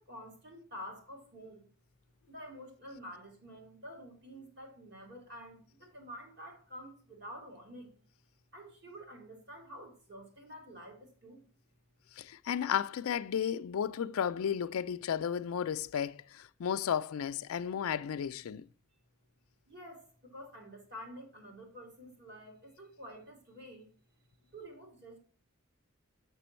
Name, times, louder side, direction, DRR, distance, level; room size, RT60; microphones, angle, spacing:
voice 1, 0.0-1.7 2.3-7.9 8.5-11.5 19.7-23.9 24.5-25.2, equal, 50° right, 2.7 m, -49 dB
voice 2, 12.2-18.6, left 8 dB, 80° left, 0.4 m, -33 dB
6.8 x 6.1 x 4.3 m
head